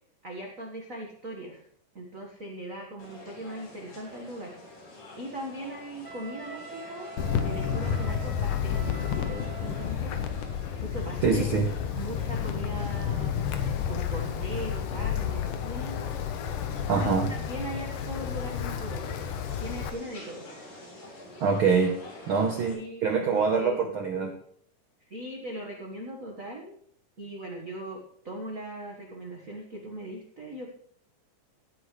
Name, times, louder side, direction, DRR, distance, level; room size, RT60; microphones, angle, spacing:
voice 1, 0.2-1.6 1.9-4.5 5.2-7.1 7.4-11.5 11.9-13.3 13.9-16.1 17.0-17.2 17.5-19.2 19.6-20.5 22.7-23.9 25.0-26.7 27.2-30.7, right 1 dB, 45° right, 0 dB, 1.1 m, -39 dB
sound 1, 3.0-22.7, left 1 dB, 60° left, 5.0 m, -47 dB
Wind instrument woodwind instrument, 6.0-9.9, right 3 dB, 5° left, 3.7 m, -44 dB
Wind, 7.2-19.9, left 8 dB, 75° left, 2.5 m, -31 dB
voice 2, 11.2-11.7 16.9-17.3 21.4-22.0 22.3-24.4, right 5 dB, 85° right, 4 dB, 1.1 m, -25 dB
17.5 x 9.2 x 3.2 m, 0.63 s
omnidirectional pair, 3.9 m